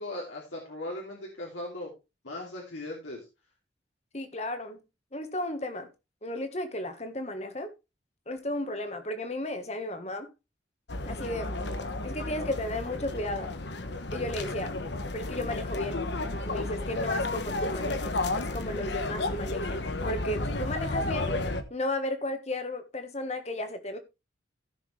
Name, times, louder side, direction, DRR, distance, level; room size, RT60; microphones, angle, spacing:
voice 1, 0.0-1.9 2.2-3.2, left 1 dB, 85° left, 2.8 m, -38 dB
voice 2, 4.1-4.8 5.1-5.9 6.2-7.7 8.3-10.3 11.0-11.5 12.0-13.5 14.1-14.8 15.1-16.0 16.4-21.3 21.7-24.0, left 1 dB, 35° left, 1.5 m, -34 dB
sound 1, 10.9-21.6, left 2 dB, 70° left, 1.2 m, -32 dB
15.5 x 6.4 x 3.3 m
head